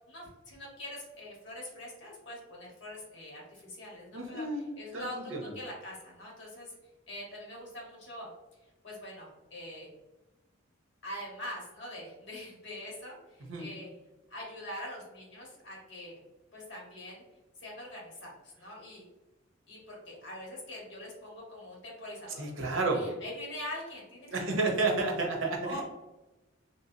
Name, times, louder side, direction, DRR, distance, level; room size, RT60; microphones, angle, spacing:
voice 1, 0.1-6.7 7.1-8.3 8.8-9.9 11.0-13.9 14.3-16.2 16.5-17.2 17.6-19.0 19.7-22.6 22.9-24.9 25.6-25.8, left 1 dB, 65° left, -3 dB, 1.3 m, -44 dB
voice 2, 4.1-4.7 4.9-5.5 13.5-13.7 22.4-23.0 24.3-25.8, right 3 dB, 80° right, 1 dB, 0.8 m, -31 dB
3.3 x 2.8 x 2.7 m, 1.1 s
head